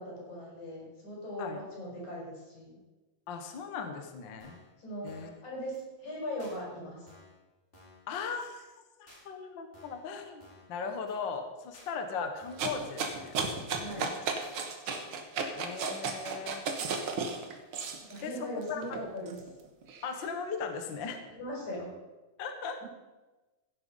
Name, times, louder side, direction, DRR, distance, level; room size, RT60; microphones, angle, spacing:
voice 1, 0.0-2.8 4.8-5.1 5.4-7.1 13.8-14.1 18.1-19.4 21.3-21.9, equal, 80° left, -3 dB, 6.4 m, -39 dB
voice 2, 3.3-4.6 5.0-5.3 8.1-8.7 9.0-13.4 14.0-14.1 15.5-16.6 18.2-18.8 20.0-21.2 22.4-22.8, left 5 dB, 50° left, 6 dB, 1.5 m, -38 dB
sound 1, 4.4-4.7 5.1-5.4 5.7-5.8 6.4-6.6 7.1-7.4 7.7-8.1 8.4-8.5 9.1-9.2 9.7-10.1 10.4-10.7 11.1-11.2 11.7-11.9 12.4-12.7 13.1-13.4 13.7-13.8 14.4-14.6, left 2 dB, 15° left, 4.7 m, -56 dB
sound 2, 12.6-18.2 18.7-20.1, right 4 dB, 55° right, 1.8 m, -34 dB
16.0 x 8.8 x 5.4 m, 1.2 s
omnidirectional pair, 3.3 m